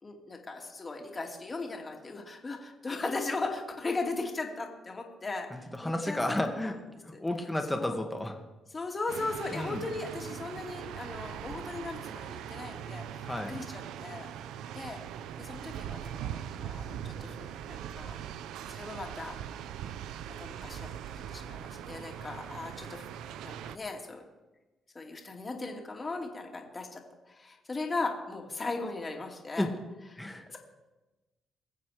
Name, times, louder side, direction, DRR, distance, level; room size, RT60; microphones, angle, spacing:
voice 1, 0.0-6.4 6.6-6.7 7.1-7.2 7.7-8.0 8.7-14.3 14.7-15.0 15.4-18.2 18.7-19.3 20.4-23.1 23.4-24.2 24.9-27.0 27.3-29.7 30.1-30.6, left 3 dB, 25° left, 1 dB, 2.5 m, -38 dB
voice 2, 5.5-6.8 7.0-8.4 9.5-9.8 13.2-13.5 29.6-29.7 30.2-30.5, left 1 dB, 10° left, 4 dB, 2.1 m, -32 dB
sound 1, 9.1-23.8, right 9 dB, 85° right, 0.6 m, -41 dB
22.0 x 7.3 x 5.0 m, 1.1 s
cardioid pair, 90°, 0 cm